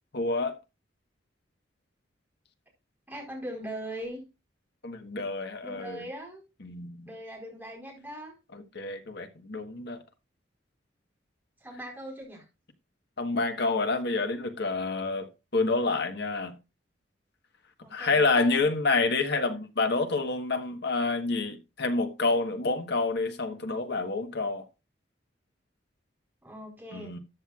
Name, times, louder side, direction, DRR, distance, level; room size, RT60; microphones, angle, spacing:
voice 1, 0.1-0.6 4.8-6.0 6.6-7.1 8.5-10.0 13.2-16.6 17.9-24.7 26.9-27.2, left 3 dB, 65° left, 1.3 m, -28 dB
voice 2, 3.1-4.2 5.6-6.4 7.1-8.4 11.6-12.4 17.8-18.7 26.4-27.2, right 1 dB, 10° right, 4.5 m, -40 dB
13.5 x 8.9 x 2.4 m
head